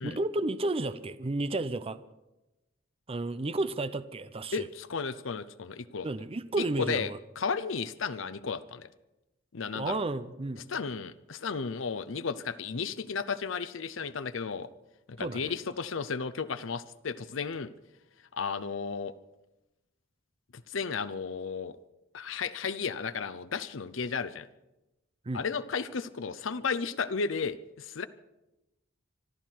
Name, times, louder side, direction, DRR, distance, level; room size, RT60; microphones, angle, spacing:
voice 1, 0.0-2.0 3.1-4.7 6.0-7.2 9.7-10.7 15.2-15.5 25.3-25.4, right 2 dB, 30° right, 13 dB, 0.6 m, -32 dB
voice 2, 4.5-6.1 6.6-7.1 7.4-8.9 9.5-10.0 10.7-14.7 15.1-17.7 18.3-19.1 20.5-21.8 22.1-24.5 25.3-28.1, left 5 dB, 75° left, 13 dB, 0.7 m, -34 dB
25.5 x 12.0 x 4.6 m, 0.96 s
head